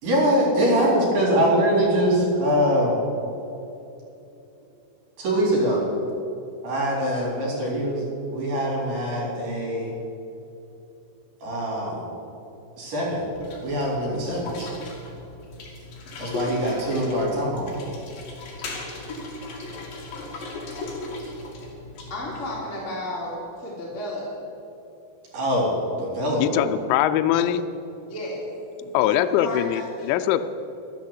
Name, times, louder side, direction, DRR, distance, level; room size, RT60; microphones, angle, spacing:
voice 1, 0.0-3.0 5.2-5.9 6.6-8.1 8.3-9.9 11.4-12.1 12.8-13.3 13.6-14.7 16.2-17.7 25.3-26.7, equal, 55° right, -4 dB, 5.7 m, -23 dB
sound 1, 13.3-22.6, left 2 dB, 55° left, 3.4 m, -37 dB
voice 2, 22.1-24.3 28.0-28.5 28.8-28.9 29.4-30.1, left 1 dB, 20° left, -5 dB, 2.3 m, -33 dB
voice 3, 26.4-27.7 28.9-30.4, left 11 dB, 85° left, 10 dB, 2.6 m, -22 dB
12.0 x 11.0 x 7.8 m, 2.8 s
omnidirectional pair, 5.4 m